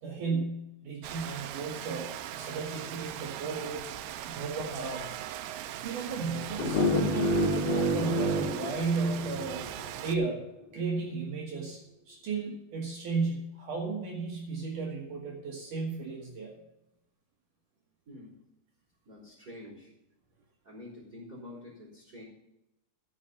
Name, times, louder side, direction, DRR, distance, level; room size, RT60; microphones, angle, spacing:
voice 1, 0.0-4.0 4.2-5.1 5.8-9.7 10.0-10.4 10.7-16.5, right 4 dB, 60° right, -1 dB, 2.8 m, -34 dB
Rain, 1.0-10.2, right 11 dB, 90° right, 2.6 m, -40 dB
sound 1, 6.6-9.7, equal, 50° left, 2.5 m, -28 dB
voice 2, 19.0-19.9 20.6-22.2, left 1 dB, 25° right, -7 dB, 4.4 m, -47 dB
14.5 x 6.5 x 5.4 m, 0.88 s
omnidirectional pair, 4.5 m